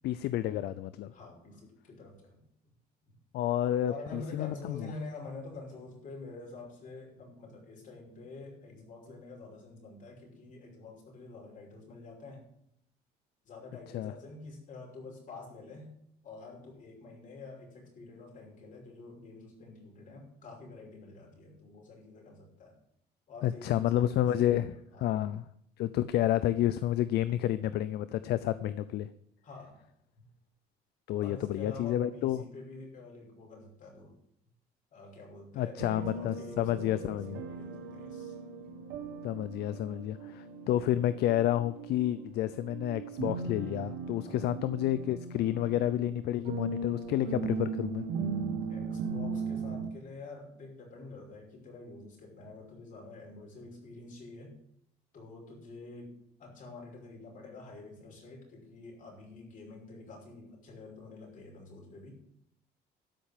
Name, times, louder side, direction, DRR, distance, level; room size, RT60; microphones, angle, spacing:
voice 1, 0.0-1.1 3.3-4.9 13.9-14.1 23.4-24.7 25.0-25.5 25.8-29.1 31.1-32.4 35.5-37.4 39.2-48.0, left 12 dB, 75° left, 14 dB, 0.6 m, -30 dB
voice 2, 1.1-2.4 3.9-12.5 13.4-15.9 16.2-22.8 23.3-25.1 29.4-29.8 30.2-30.3 31.2-34.1 34.9-38.4 44.2-44.6 48.7-54.5 55.1-62.1, left 3 dB, 50° left, 0 dB, 5.8 m, -47 dB
sound 1, 35.8-49.9, right 4 dB, 80° right, 1.5 m, -38 dB
13.0 x 5.6 x 8.9 m, 0.72 s
cardioid pair, 110°, 17 cm